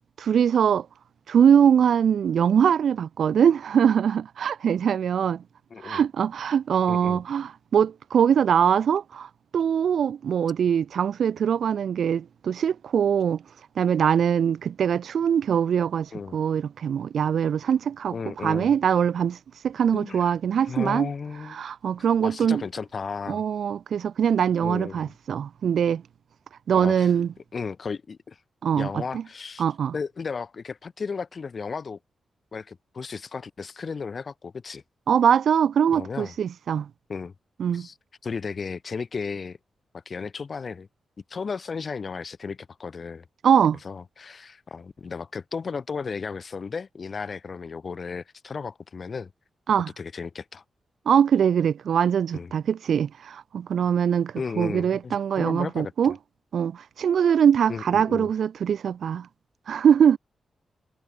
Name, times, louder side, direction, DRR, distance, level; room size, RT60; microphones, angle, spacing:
voice 1, 0.2-0.9 1.3-5.4 5.8-13.4 13.8-18.1 18.4-19.4 19.6-21.1 21.5-22.6 23.3-26.0 26.7-27.3 28.6-29.2 29.6-29.9 35.1-36.9 37.6-37.9 43.4-43.8 49.7-49.9 51.0-56.1 56.5-59.3 59.7-60.2, right 8 dB, 70° right, 1.9 m, -22 dB
voice 2, 5.7-6.0 6.9-7.2 16.1-16.4 18.1-18.7 19.9-20.3 20.6-21.6 22.2-23.4 24.6-25.1 26.7-27.1 27.5-28.4 28.8-29.6 29.9-32.0 32.5-34.8 35.9-36.3 37.1-37.3 37.7-37.9 38.2-39.6 39.9-40.9 41.3-43.3 43.8-49.3 50.0-50.6 52.3-52.5 54.4-56.1 57.7-58.3, left 5 dB, 40° left, 5.4 m, -34 dB
wide cardioid pair, 145°, 0 cm